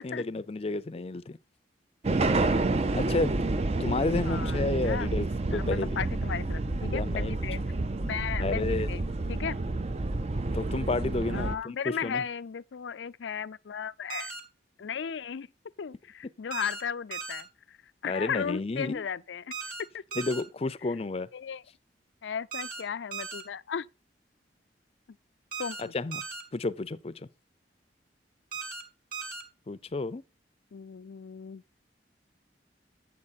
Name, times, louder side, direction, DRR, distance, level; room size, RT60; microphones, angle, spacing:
voice 1, 0.0-1.4 2.9-3.4 3.8-6.0 6.9-7.3 8.4-8.9 10.5-12.2 18.0-19.0 20.2-21.3 25.8-26.2 26.5-27.3 29.7-30.2, left 3 dB, 35° left, 0.5 m, -31 dB
sound 1, 2.0-11.6, right 2 dB, 35° right, 0.5 m, -29 dB
voice 2, 4.2-5.1 5.5-7.6 8.0-9.0 9.3-9.6 11.3-14.3 14.8-15.5 15.8-17.8 18.0-19.6 19.9-20.2 21.3-21.6 22.2-23.9 25.6-25.9 30.7-31.6, left 7 dB, 90° left, 0.4 m, -35 dB
sound 2, 14.1-14.4 16.5-16.8 17.1-17.4 19.5-19.8 20.1-20.4 22.5-22.8 23.1-23.4 25.5-25.8 26.1-26.4 28.5-28.8 29.1-29.4, right 5 dB, 50° right, 2.1 m, -37 dB
8.6 x 7.3 x 4.1 m
head